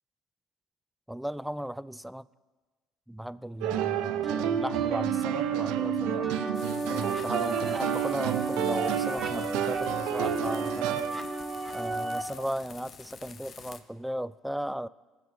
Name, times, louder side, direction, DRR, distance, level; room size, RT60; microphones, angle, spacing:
voice 1, 1.1-2.3 3.1-6.3 6.8-11.0 11.7-14.9, equal, ahead, 17 dB, 0.3 m, -36 dB
sound 1, 3.6-11.1, right 12 dB, 75° right, 0.5 m, -30 dB
sound 2, 4.2-12.2, right 2 dB, 30° right, 1.3 m, -33 dB
sound 3, 6.5-13.8, left 6 dB, 45° left, 0.7 m, -48 dB
18.5 x 7.2 x 3.6 m, 1.3 s
hypercardioid pair, 75°, 0 cm